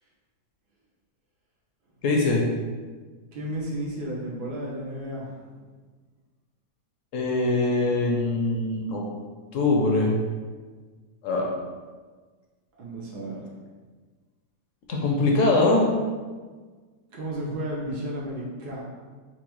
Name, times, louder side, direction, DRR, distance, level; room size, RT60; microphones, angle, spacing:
voice 1, 2.0-2.4 7.1-9.0 9.5-10.2 11.2-11.5 14.9-15.9, left 2 dB, 65° left, 0 dB, 0.8 m, -22 dB
voice 2, 3.3-5.4 12.8-13.5 17.1-18.8, right 1 dB, 80° right, -4 dB, 1.4 m, -33 dB
4.5 x 2.3 x 2.9 m, 1.4 s
omnidirectional pair, 1.7 m